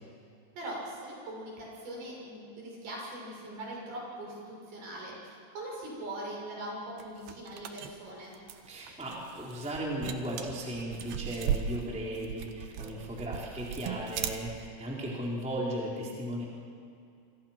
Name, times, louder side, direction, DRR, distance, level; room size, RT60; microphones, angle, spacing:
voice 1, 0.6-8.4, right 1 dB, 50° right, -3 dB, 8.2 m, -41 dB
sound 1, 7.0-14.7, right 8 dB, 70° right, 2.6 m, -37 dB
voice 2, 8.7-16.4, equal, ahead, -4 dB, 3.3 m, -36 dB
27.5 x 25.5 x 6.1 m, 2.4 s
omnidirectional pair, 6.0 m